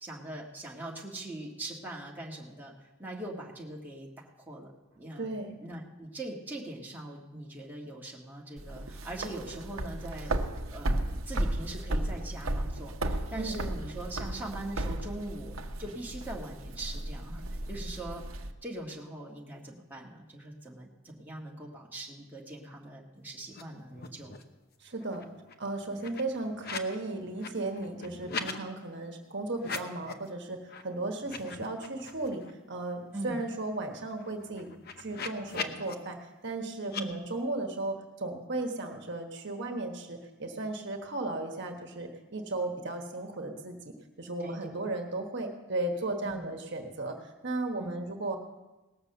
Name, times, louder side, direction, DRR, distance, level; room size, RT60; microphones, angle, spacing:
voice 1, 0.0-2.7 3.0-5.3 5.6-10.4 10.7-11.0 11.3-24.3 33.1-33.4 36.9-37.2 44.4-44.7 46.2-46.5 47.8-48.0, right 1 dB, 10° right, -3 dB, 1.7 m, -41 dB
voice 2, 5.2-5.5 13.3-13.6 24.8-25.2 25.6-34.7 35.0-48.4, right 2 dB, 60° right, 4 dB, 1.3 m, -35 dB
sound 1, 8.6-18.5, right 1 dB, 80° right, 0.9 m, -34 dB
sound 2, 23.5-23.6 23.9-24.6 24.9-27.0 27.3-28.6 29.5-30.3 30.7-30.8 31.2-32.5 32.9-33.0 33.3-35.9 36.8-37.0, left 5 dB, 50° left, 0.9 m, -41 dB
18.5 x 6.9 x 6.8 m, 1.1 s
head